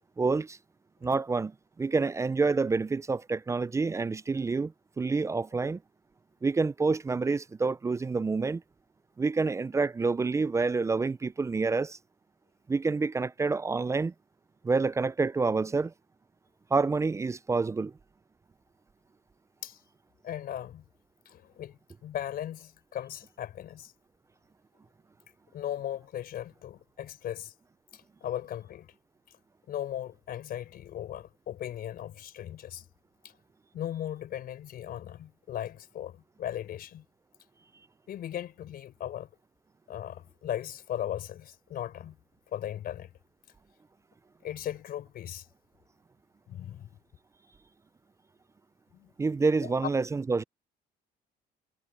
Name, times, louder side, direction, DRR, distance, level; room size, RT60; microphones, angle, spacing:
voice 1, 0.2-0.6 1.0-5.8 6.4-8.6 9.2-12.0 12.7-14.1 14.6-15.9 16.7-17.9 49.2-50.4, right 4 dB, 15° right, 0.4 m, -28 dB
voice 2, 20.2-20.8 21.3-23.9 25.5-27.5 27.9-28.9 29.7-32.8 33.7-37.0 38.1-39.3 39.9-42.2 42.5-43.1 44.4-45.5 46.5-46.9 48.9-49.1 49.6-49.7, left 11 dB, 60° left, 4.5 m, -37 dB
cardioid pair, 110°, 17 cm